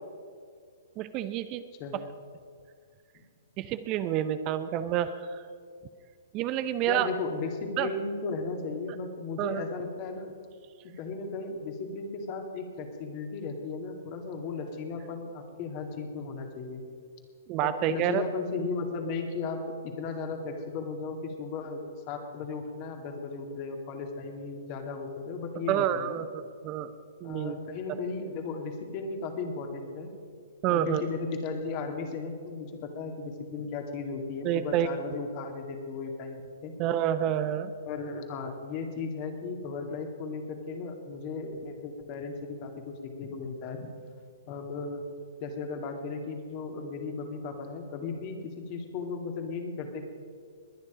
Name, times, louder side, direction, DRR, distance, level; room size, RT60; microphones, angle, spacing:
voice 1, 1.0-1.6 3.6-5.4 6.3-7.1 7.8-7.9 9.4-9.6 17.5-18.2 25.7-26.2 26.6-26.9 27.2-27.6 30.6-31.0 34.4-34.9 36.8-37.7, right 11 dB, 35° right, 11 dB, 0.6 m, -28 dB
voice 2, 6.8-10.3 10.8-16.8 17.6-26.2 27.2-30.1 30.7-36.7 37.9-43.9 44.5-45.0 45.4-50.0, left 4 dB, 40° left, 4 dB, 2.3 m, -36 dB
21.0 x 9.8 x 5.0 m, 2.2 s
figure-of-eight pair, 120°, 0 cm